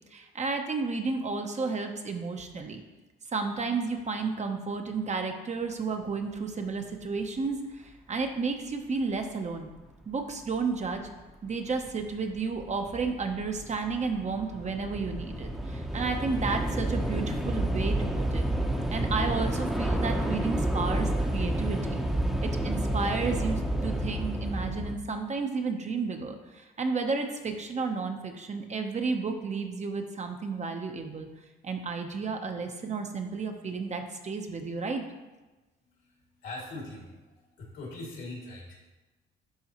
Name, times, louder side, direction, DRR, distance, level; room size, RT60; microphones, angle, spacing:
voice 1, 0.1-2.8 3.3-9.7 10.1-11.1 11.4-18.5 18.9-22.0 22.4-31.3 31.6-35.0, right 4 dB, 35° right, 4 dB, 0.8 m, -32 dB
Train / Subway metro underground, 10.9-11.0 11.9-12.1 12.4-24.9, right 1 dB, ahead, 0.8 m, -30 dB
voice 2, 36.4-37.2 37.6-38.8, left 2 dB, 75° left, -2 dB, 2.2 m, -41 dB
11.5 x 3.8 x 3.0 m, 1.1 s
cardioid pair, 90°, 20 cm